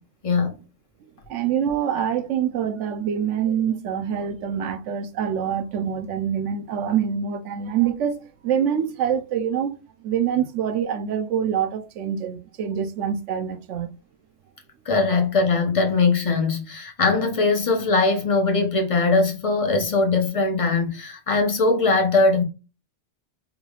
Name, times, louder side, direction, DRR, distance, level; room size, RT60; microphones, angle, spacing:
voice 1, 1.3-8.2 8.4-13.9, right 8 dB, 80° right, 1.0 m, -25 dB
voice 2, 14.9-22.4, left 3 dB, 35° left, 0.8 m, -21 dB
4.7 x 3.3 x 2.3 m
omnidirectional pair, 1.2 m